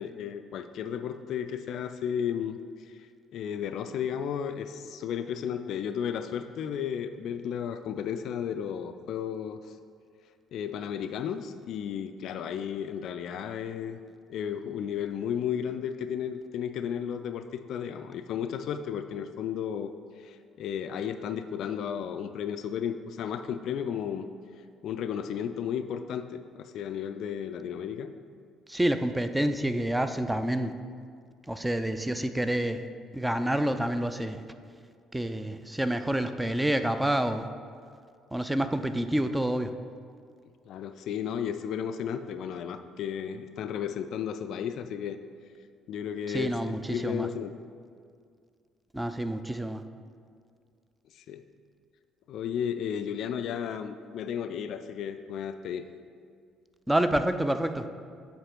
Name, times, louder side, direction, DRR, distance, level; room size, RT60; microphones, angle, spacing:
voice 1, 0.0-2.6 2.9-9.6 10.5-14.0 14.3-19.9 20.2-24.3 24.8-28.1 40.7-45.2 45.9-47.5 51.3-51.4 52.3-55.9, left 8 dB, 60° left, 9 dB, 0.3 m, -33 dB
voice 2, 28.7-30.7 31.5-32.8 33.1-34.4 35.1-37.4 38.3-39.7 46.3-47.3 48.9-49.8 56.9-57.8, right 1 dB, 10° right, 9 dB, 0.5 m, -28 dB
7.8 x 5.1 x 4.5 m, 2.2 s
hypercardioid pair, 50°, 0 cm